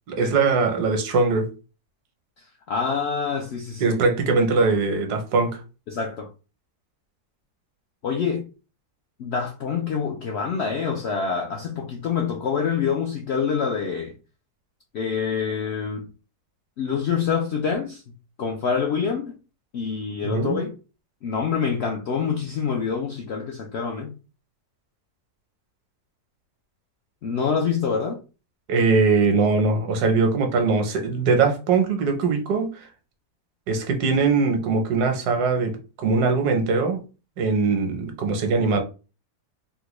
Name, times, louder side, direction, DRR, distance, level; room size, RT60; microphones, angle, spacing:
voice 1, 0.1-1.5 3.8-5.6 20.2-20.7 28.7-32.9 33.7-37.0 37.4-38.8, right 4 dB, 80° right, 1.3 m, -21 dB
voice 2, 2.4-4.0 5.9-6.3 8.0-8.5 9.2-14.1 14.9-16.1 16.8-18.0 18.4-19.3 19.7-20.7 21.2-24.1 27.2-28.2, left 6 dB, 75° left, 0.6 m, -26 dB
3.6 x 2.2 x 3.0 m
omnidirectional pair, 1.7 m